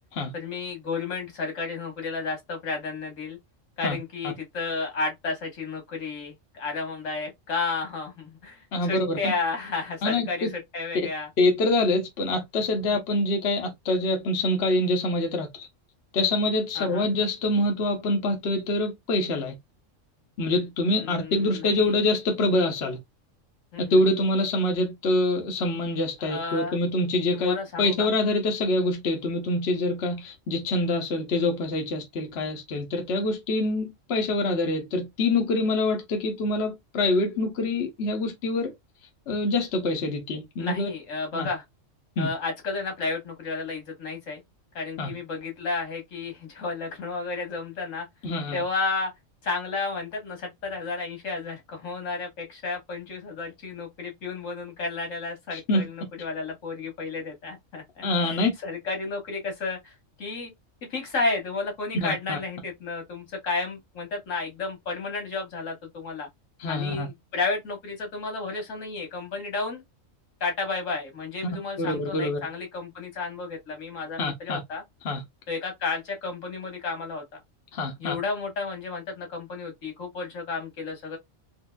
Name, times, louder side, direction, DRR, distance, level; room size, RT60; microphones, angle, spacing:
voice 1, 0.3-3.4 3.8-11.3 16.8-17.1 20.9-22.0 23.7-24.0 26.2-26.8 27.3-28.1 40.6-41.6 42.2-44.4 44.7-48.1 48.5-49.1 49.4-60.5 60.9-66.3 66.7-69.8 70.4-74.8 75.5-77.4 78.0-81.2, left 4 dB, 80° left, 1.8 m, -32 dB
voice 2, 8.7-9.3 10.0-10.5 11.4-15.7 16.1-19.6 20.4-23.0 23.9-38.7 39.3-40.9 41.3-41.5 42.2-42.3 45.0-45.1 48.2-48.6 55.5-55.9 58.0-58.5 62.0-62.4 66.6-67.1 71.8-72.4 74.2-74.6 75.0-75.2 77.7-78.2, left 2 dB, 60° left, 1.0 m, -25 dB
4.4 x 2.5 x 2.2 m
omnidirectional pair, 1.3 m